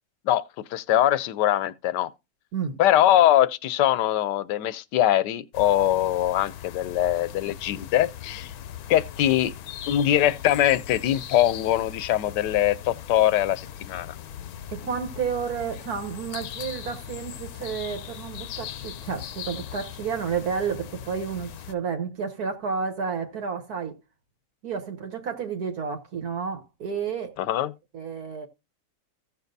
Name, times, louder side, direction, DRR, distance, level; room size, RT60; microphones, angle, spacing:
voice 1, 0.7-2.1 2.8-8.5 8.9-9.5 9.9-14.2 27.4-27.7, left 12 dB, 85° left, 1.3 m, -22 dB
sound 1, 5.5-21.7, left 10 dB, 70° left, 1.1 m, -39 dB
voice 2, 14.7-24.0 24.6-27.4 27.9-28.5, right 6 dB, 65° right, 1.6 m, -31 dB
15.0 x 7.1 x 2.7 m
omnidirectional pair, 1.8 m